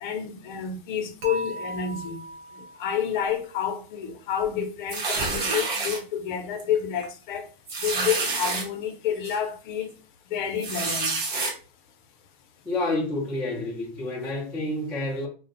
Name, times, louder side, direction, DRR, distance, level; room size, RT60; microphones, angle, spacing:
voice 1, 0.0-2.2 2.5-7.5 7.8-9.9 10.3-11.2, left 8 dB, 55° left, 0.6 m, -29 dB
Dishes pots and pans / Chink clink, 1.2-3.3, right 2 dB, 80° right, 0.9 m, -37 dB
sound 1, 4.9-6.0 6.6-6.8 7.0-7.1 7.7-8.6 9.2-9.4 10.6-11.5, right 3 dB, 45° right, 0.9 m, -28 dB
voice 2, 12.7-15.3, left 2 dB, 5° left, 0.4 m, -29 dB
2.4 x 2.1 x 2.5 m
hypercardioid pair, 135°, 30 cm